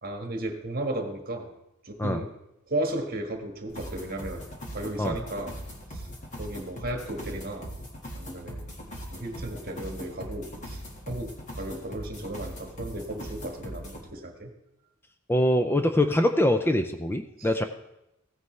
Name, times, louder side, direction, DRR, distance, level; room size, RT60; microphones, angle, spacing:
voice 1, 0.0-1.5 1.8-2.3 2.7-4.5 4.7-5.6 5.9-6.1 6.4-7.7 8.2-8.7 9.1-10.8 11.1-14.5 17.4-17.5, right 1 dB, 45° right, 3 dB, 1.5 m, -34 dB
sound 1, 3.7-14.0, equal, 35° left, 1.8 m, -40 dB
voice 2, 15.3-17.6, left 1 dB, 10° left, 7 dB, 0.4 m, -23 dB
15.5 x 9.7 x 3.2 m, 0.88 s
head